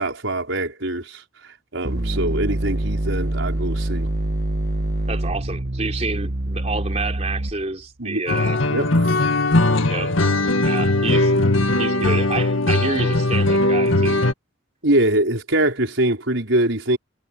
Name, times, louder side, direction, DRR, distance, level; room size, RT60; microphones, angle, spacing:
voice 1, 0.0-4.1 8.0-8.2 8.6-9.3 14.8-17.0, right 1 dB, 75° right, 5.1 m, -23 dB
sound 1, 1.9-7.8, right 1 dB, 50° right, 1.3 m, -25 dB
voice 2, 5.1-8.6 9.9-11.3 11.8-14.2, right 3 dB, 35° right, 3.6 m, -28 dB
sound 2, 8.3-14.3, left 2 dB, 80° left, 2.0 m, -19 dB
head